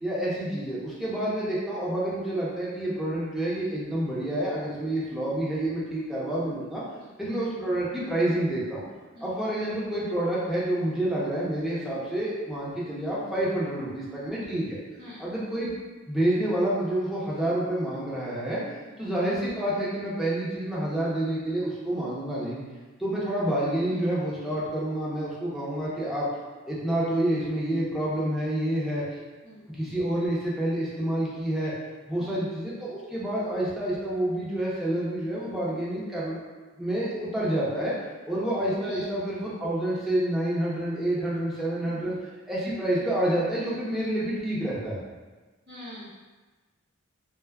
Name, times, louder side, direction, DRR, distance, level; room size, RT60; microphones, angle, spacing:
voice 1, 0.0-6.8 7.2-8.8 9.2-14.8 15.2-15.7 16.1-18.6 19.0-22.6 23.0-26.3 26.7-29.0 29.7-31.7 32.1-36.4 36.8-37.9 38.3-42.1 42.5-45.0, right 1 dB, ahead, -8 dB, 0.6 m, -28 dB
voice 2, 6.9-7.3 9.1-9.3 15.0-15.3 18.8-19.1 23.9-24.0 29.4-29.7 32.2-32.4 37.1-37.2 38.8-39.0 41.8-42.2 45.7-46.1, equal, 50° right, -10 dB, 1.3 m, -46 dB
3.3 x 2.1 x 2.2 m, 1.3 s
head